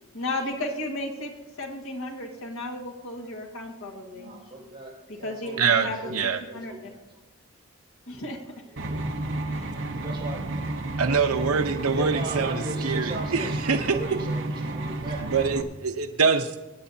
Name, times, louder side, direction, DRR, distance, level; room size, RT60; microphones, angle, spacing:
voice 1, 0.1-1.3 1.6-4.3 5.1-6.7 8.1-8.8 9.5-9.8, left 1 dB, 70° left, 1 dB, 1.7 m, -34 dB
voice 2, 4.1-4.9 5.2-7.2 8.9-9.0 9.9-10.4 11.9-15.2, right 2 dB, 25° right, -6 dB, 5.3 m, -38 dB
voice 3, 5.6-6.4 11.0-14.0 15.2-16.5, right 5 dB, 85° right, 7 dB, 0.8 m, -25 dB
sound 1, 8.8-15.6, right 2 dB, 55° right, 0.9 m, -31 dB
23.0 x 9.3 x 2.8 m, 1.0 s
head